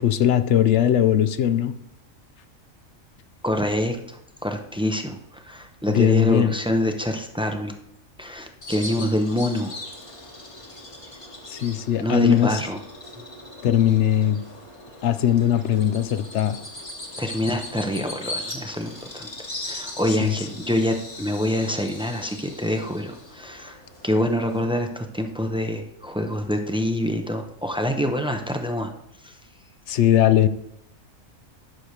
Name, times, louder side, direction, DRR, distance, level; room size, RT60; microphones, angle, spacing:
voice 1, 0.0-1.7 5.9-6.5 11.5-12.6 13.6-14.4 15.0-16.6 20.2-20.3 29.9-30.5, left 11 dB, 65° left, 12 dB, 0.8 m, -19 dB
voice 2, 3.4-7.8 8.2-9.7 12.0-12.8 13.2-13.3 17.2-19.3 19.6-23.8 24.0-28.9 29.2-29.3, left 1 dB, 10° right, 5 dB, 0.4 m, -26 dB
Bird vocalization bird call bird song, 8.6-24.6, left 1 dB, 25° left, 1.2 m, -39 dB
11.0 x 6.6 x 3.2 m, 0.78 s
omnidirectional pair, 1.4 m